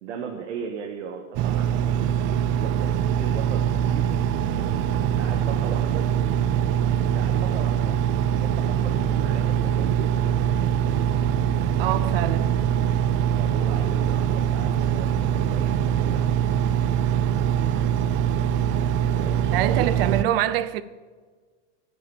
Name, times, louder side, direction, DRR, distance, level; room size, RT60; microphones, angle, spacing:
voice 1, 0.0-4.1 5.2-6.1 7.0-8.0 8.3-10.3 13.3-16.2 19.1-19.9, right 7 dB, 85° right, 1.7 m, -37 dB
Engine, 1.3-20.2, right 9 dB, 35° right, 0.5 m, -23 dB
voice 2, 11.8-12.5 19.5-20.8, right 12 dB, 55° right, 0.9 m, -25 dB
10.5 x 10.0 x 7.1 m
supercardioid pair, 150°, 35 cm